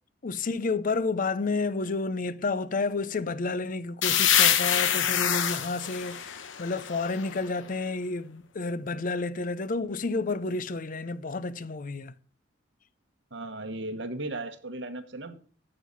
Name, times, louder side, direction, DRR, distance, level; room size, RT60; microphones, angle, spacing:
voice 1, 0.2-12.1, left 3 dB, 45° left, 0.5 m, -30 dB
sound 1, 4.0-7.6, left 9 dB, 85° left, 0.9 m, -26 dB
voice 2, 13.3-15.3, right 2 dB, 65° right, 1.4 m, -36 dB
9.3 x 7.6 x 5.5 m
head